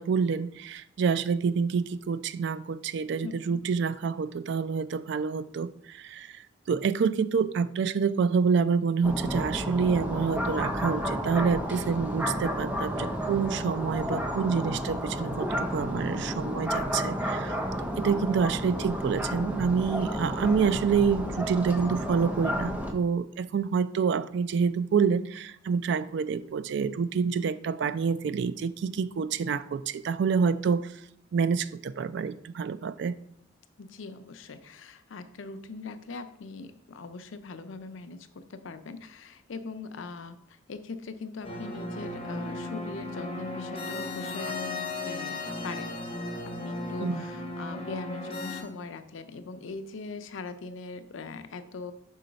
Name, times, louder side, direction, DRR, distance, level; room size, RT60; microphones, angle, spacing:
voice 1, 0.0-17.6 18.0-30.9 31.3-33.2 47.0-47.2, right 5 dB, 60° right, 0.3 m, -27 dB
voice 2, 3.2-3.6 33.8-44.6 45.0-46.0 46.5-51.9, left 4 dB, 80° left, 0.5 m, -41 dB
sound 1, 9.0-22.9, equal, 10° right, 0.6 m, -31 dB
sound 2, 41.4-48.6, left 2 dB, 30° left, 1.2 m, -35 dB
5.5 x 3.9 x 5.1 m
head